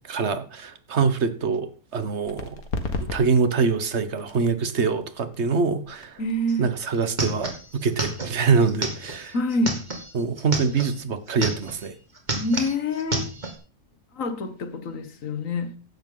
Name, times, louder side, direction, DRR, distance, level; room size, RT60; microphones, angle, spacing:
voice 1, 0.1-2.6 3.1-6.2 6.6-9.3 10.1-11.9, right 5 dB, 50° right, 1.4 m, -24 dB
sound 1, 2.2-9.6, left 3 dB, 85° left, 2.1 m, -38 dB
voice 2, 6.2-6.7 9.3-9.8 12.3-13.3 14.1-15.8, left 1 dB, 65° left, 1.7 m, -26 dB
sound 2, 6.5-6.6 6.8-11.0 11.3-11.9 12.2-13.6, right 2 dB, 30° right, 2.4 m, -30 dB
15.0 x 11.0 x 3.9 m
omnidirectional pair, 1.5 m